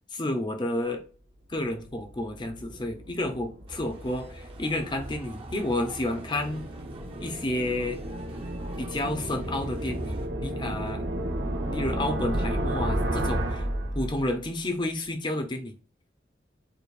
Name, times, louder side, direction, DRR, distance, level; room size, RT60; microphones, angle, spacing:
voice 1, 0.1-1.0 1.5-6.7 7.2-8.0 8.8-11.0 11.7-13.7 13.9-15.7, left 1 dB, 25° left, 0.6 m, -30 dB
sound 1, 1.6-14.5, right 1 dB, 80° right, 1.0 m, -33 dB
sound 2, 3.7-10.3, right 2 dB, 30° right, 0.8 m, -47 dB
6.6 x 2.5 x 2.4 m
head